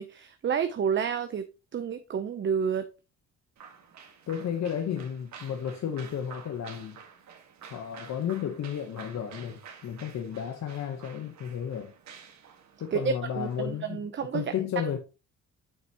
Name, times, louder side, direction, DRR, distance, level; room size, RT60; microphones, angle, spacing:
voice 1, 0.0-1.5 1.7-2.8 12.9-14.4, right 7 dB, 40° right, 0.6 m, -29 dB
sound 1, 3.6-13.8, right 6 dB, 65° right, 1.6 m, -50 dB
voice 2, 4.3-7.0 7.7-11.9 12.8-14.1 14.3-15.0, left 8 dB, 60° left, 1.0 m, -33 dB
7.2 x 6.0 x 2.9 m
cardioid pair, 90°, 30 cm